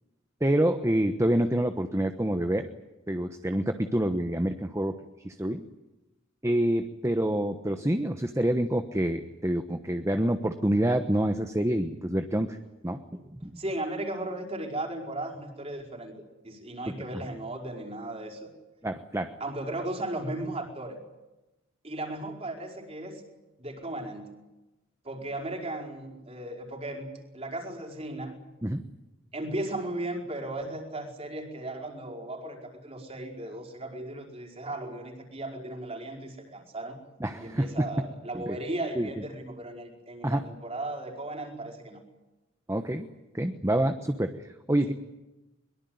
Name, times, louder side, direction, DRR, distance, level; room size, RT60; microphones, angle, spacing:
voice 1, 0.4-2.7 3.1-5.0 5.2-5.6 6.4-12.6 12.8-13.5 17.1-17.2 18.8-19.3 28.6-28.8 37.2-37.9 38.3-38.6 38.9-39.1 40.2-40.5 42.7-43.1 43.3-44.9, right 1 dB, 15° right, 8 dB, 1.1 m, -27 dB
voice 2, 13.6-16.1 16.4-18.5 19.4-21.0 21.8-23.2 23.6-24.3 25.0-28.4 29.3-37.0 37.4-42.0, right 1 dB, 30° right, 2 dB, 5.0 m, -36 dB
23.0 x 22.5 x 9.6 m, 1.0 s
head